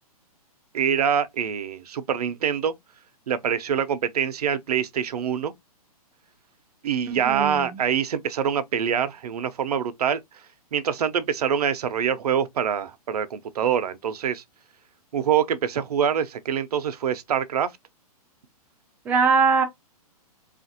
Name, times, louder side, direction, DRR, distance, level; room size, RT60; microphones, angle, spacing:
voice 1, 0.7-2.7 3.3-5.5 6.8-10.2 10.7-14.4 15.1-17.7, right 8 dB, 80° right, 0.6 m, -25 dB
voice 2, 7.1-7.8 19.1-19.6, right 5 dB, 10° right, 0.3 m, -21 dB
3.3 x 2.4 x 2.7 m
hypercardioid pair, 155°, 20 cm